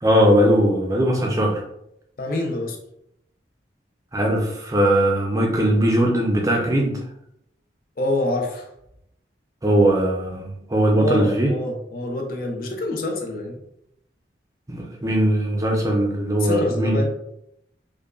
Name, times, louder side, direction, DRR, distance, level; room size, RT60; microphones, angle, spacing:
voice 1, 0.0-1.6 4.1-7.0 9.6-11.5 14.7-17.0, right 1 dB, 20° right, 0 dB, 0.5 m, -19 dB
voice 2, 2.2-2.8 8.0-8.7 11.0-13.6 16.4-17.1, left 1 dB, 50° left, 2 dB, 0.6 m, -26 dB
5.1 x 2.3 x 2.4 m, 0.78 s
head